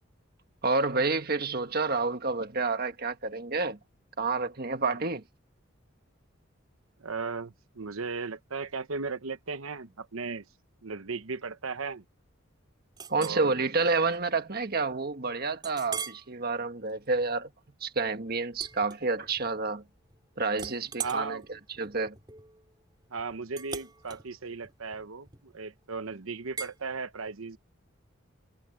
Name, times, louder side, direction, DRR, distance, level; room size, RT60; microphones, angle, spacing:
voice 1, 0.6-3.8 4.2-5.2 13.1-17.5 17.8-19.8 20.4-22.1, right 3 dB, 45° right, 1.6 m, -29 dB
voice 2, 7.0-10.4 10.8-12.0 13.2-13.6 21.0-21.4 23.1-27.6, right 4 dB, 85° right, 1.0 m, -36 dB
Chink clink, 13.0-13.4 14.0-14.2 14.6-14.7 15.6-16.3 16.8-17.1 18.5-19.5 19.8-20.2 20.5-25.7 26.6-26.8, right 6 dB, 20° right, 5.1 m, -41 dB
head